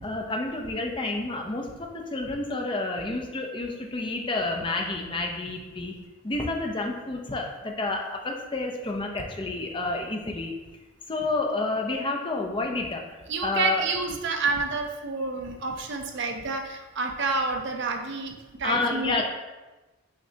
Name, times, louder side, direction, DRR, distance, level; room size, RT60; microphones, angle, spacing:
voice 1, 0.0-5.9 6.2-10.5 11.1-13.0 13.4-13.8 18.6-19.2, left 2 dB, 25° left, 2 dB, 0.5 m, -29 dB
voice 2, 13.3-19.2, right 4 dB, 55° right, 4 dB, 0.5 m, -29 dB
5.7 x 3.2 x 2.8 m, 1.1 s
head